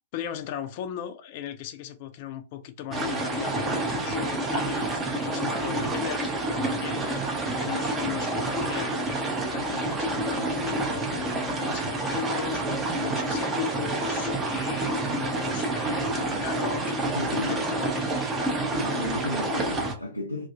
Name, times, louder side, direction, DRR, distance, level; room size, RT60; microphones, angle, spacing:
voice 1, 0.1-9.0 9.5-18.2, left 10 dB, 45° left, 0.4 m, -38 dB
sound 1, 2.9-19.9, right 2 dB, 15° right, 0.6 m, -28 dB
voice 2, 17.1-17.7 18.7-20.5, left 1 dB, 90° right, 0.4 m, -33 dB
2.3 x 2.0 x 2.6 m
figure-of-eight pair, 105°, 0 cm